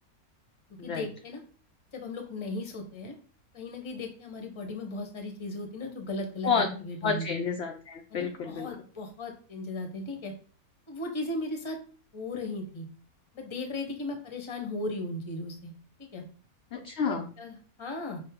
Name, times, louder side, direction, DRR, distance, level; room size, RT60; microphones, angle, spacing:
voice 1, 0.8-1.4 1.9-3.1 3.5-6.5 6.8-7.3 8.1-10.3 10.9-11.8 12.1-12.9 13.3-15.7 16.1-16.2 16.7-18.2, left 2 dB, 25° left, 4 dB, 0.7 m, -36 dB
voice 2, 6.4-8.7 16.7-17.3, left 5 dB, 70° left, 4 dB, 0.6 m, -30 dB
6.2 x 2.1 x 3.5 m, 0.41 s
omnidirectional pair, 1.6 m